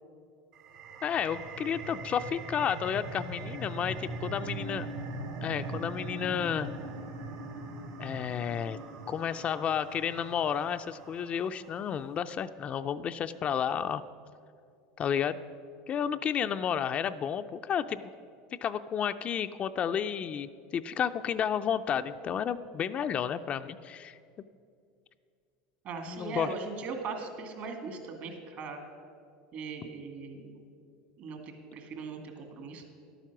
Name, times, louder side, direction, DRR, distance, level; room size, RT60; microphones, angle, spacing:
sound 1, 0.5-11.7, right 2 dB, 70° right, 1.4 m, -41 dB
voice 1, 1.0-4.9 5.4-6.7 8.0-8.8 9.1-14.0 15.0-15.4 15.9-18.1 18.6-24.2 26.1-26.5, left 8 dB, 35° left, 10 dB, 0.4 m, -31 dB
voice 2, 25.8-28.8 29.5-30.6 31.2-32.8, right 4 dB, 50° right, 4 dB, 2.0 m, -39 dB
11.5 x 9.0 x 6.0 m, 2.3 s
supercardioid pair, 110°, 4 cm